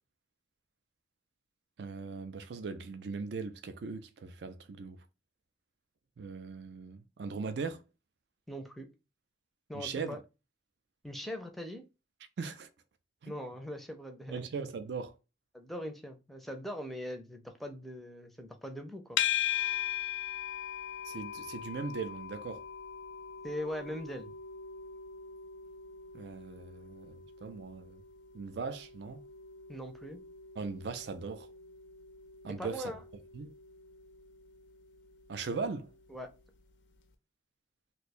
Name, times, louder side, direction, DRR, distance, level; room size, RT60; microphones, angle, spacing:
voice 1, 1.8-5.0 6.2-7.8 9.7-10.2 12.4-12.7 13.2-13.3 14.3-15.1 21.0-22.6 26.1-28.0 28.3-29.2 30.6-31.5 32.4-32.9 33.3-33.5 35.3-35.9, right 4 dB, 65° right, 0.4 m, -39 dB
voice 2, 8.5-8.9 9.7-10.2 11.0-11.8 13.3-14.4 15.5-19.2 23.4-24.3 29.7-30.2 32.6-33.0 36.1-36.3, equal, ahead, 0.5 m, -41 dB
sound 1, 19.2-36.4, left 10 dB, 85° left, 0.5 m, -40 dB
2.6 x 2.2 x 4.0 m
head